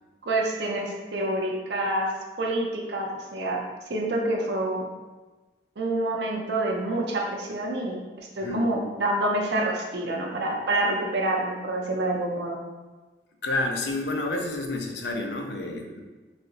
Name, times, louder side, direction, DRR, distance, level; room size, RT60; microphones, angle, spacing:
voice 1, 0.2-2.1 2.4-3.6 3.9-4.8 5.8-12.6, right 1 dB, 70° right, 0 dB, 0.5 m, -27 dB
voice 2, 13.4-16.0, left 2 dB, 70° left, 3 dB, 0.4 m, -29 dB
3.1 x 2.8 x 2.7 m, 1.2 s
head